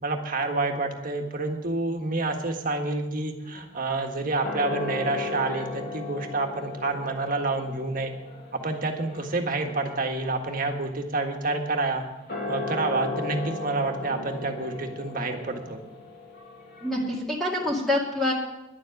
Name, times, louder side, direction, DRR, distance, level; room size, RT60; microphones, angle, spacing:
voice 1, 0.0-8.1 8.5-12.0 12.5-15.8, right 2 dB, 45° right, 3 dB, 1.6 m, -28 dB
sound 1, 3.4-17.2, left 2 dB, 55° left, 2.6 m, -37 dB
voice 2, 16.8-18.3, left 1 dB, ahead, -3 dB, 2.2 m, -26 dB
11.0 x 7.4 x 9.3 m, 0.99 s
head